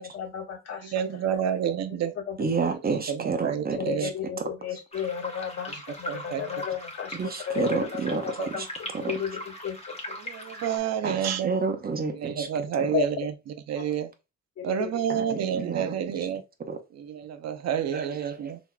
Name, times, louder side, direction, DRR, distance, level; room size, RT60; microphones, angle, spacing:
voice 1, 0.0-0.9 1.3-1.5 2.0-2.4 3.8-7.2 7.4-10.4 12.9-13.0 14.6-14.9, left 8 dB, 55° left, 1.5 m, -33 dB
voice 2, 0.8-2.1 2.9-4.1 6.1-6.4 8.4-8.5 10.2-11.5 12.1-13.3 13.7-14.1 14.6-16.4 16.9-18.6, right 8 dB, 60° right, 0.6 m, -29 dB
voice 3, 2.4-4.1 7.1-8.3 8.6-8.7 8.9-9.1 10.5-10.6 11.0-12.5 15.1-15.9 16.7-16.8 17.9-18.5, right 4 dB, 30° right, 0.8 m, -30 dB
sound 1, 4.9-10.8, left 1 dB, 20° left, 1.2 m, -40 dB
3.9 x 3.0 x 2.2 m
cardioid pair, 90°, 30 cm